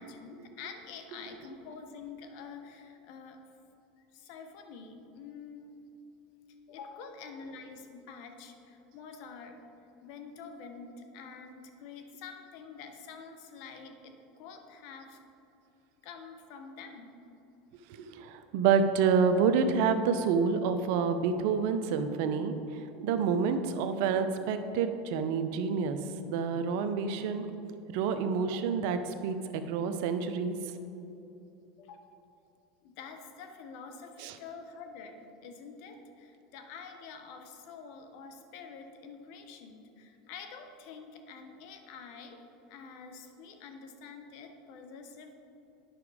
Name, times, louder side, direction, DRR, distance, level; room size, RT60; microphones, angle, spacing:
voice 1, 0.0-3.4 4.1-5.8 6.7-9.6 10.0-15.2 16.0-17.2 31.8-32.0 32.8-45.4, left 5 dB, 65° left, 6 dB, 1.0 m, -47 dB
voice 2, 18.0-26.0 26.3-27.5 27.9-30.6 34.2-34.3, right 6 dB, 70° right, 9 dB, 0.6 m, -28 dB
9.1 x 6.0 x 4.9 m, 2.8 s
hypercardioid pair, 100°, 0 cm